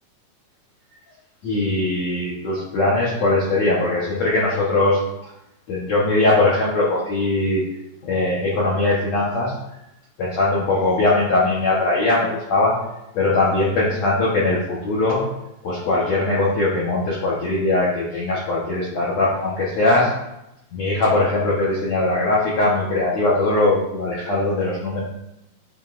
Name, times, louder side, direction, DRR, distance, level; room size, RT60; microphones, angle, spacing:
voice 1, 1.4-5.0 5.7-7.6 8.0-9.5 10.2-12.7 13.1-15.2 15.6-20.1 20.7-25.0, left 2 dB, 80° left, -6 dB, 1.5 m, -20 dB
11.0 x 5.3 x 2.5 m, 0.87 s
omnidirectional pair, 5.0 m